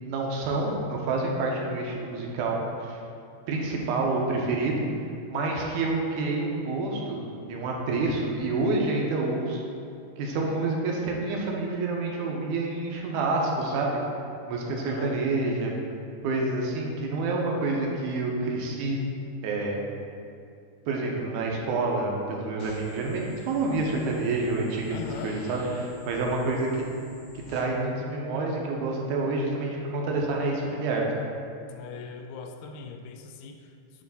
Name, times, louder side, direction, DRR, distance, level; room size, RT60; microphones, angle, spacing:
voice 1, 0.0-2.6 2.8-3.0 3.5-4.8 5.3-7.2 7.5-9.6 10.2-14.0 14.5-15.7 16.2-19.0 19.4-19.8 20.9-25.0 25.2-26.8 27.5-31.0, right 3 dB, 80° right, -1 dB, 2.1 m, -28 dB
voice 2, 14.8-15.2 24.9-25.4 31.7-34.0, left 5 dB, 85° left, 5 dB, 2.1 m, -41 dB
sound 1, 22.6-27.6, left 2 dB, 70° left, 1.7 m, -47 dB
8.6 x 3.1 x 4.1 m, 2.5 s
omnidirectional pair, 3.6 m